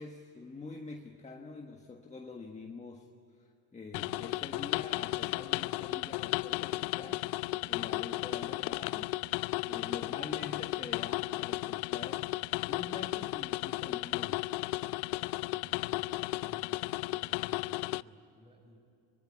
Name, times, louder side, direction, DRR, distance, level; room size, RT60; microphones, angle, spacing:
voice 1, 0.0-3.1 3.4-7.3 7.7-9.2 9.7-12.4 12.6-14.5, left 4 dB, 15° left, 3 dB, 1.4 m, -46 dB
sound 1, 3.9-18.0, left 20 dB, 65° left, 0.6 m, -34 dB
sound 2, 5.2-10.0, left 12 dB, 80° left, 1.8 m, -59 dB
voice 2, 15.1-18.8, right 1 dB, 10° right, 1 dB, 7.5 m, -60 dB
24.5 x 23.5 x 10.0 m, 2.6 s
cardioid pair, 130°, 45 cm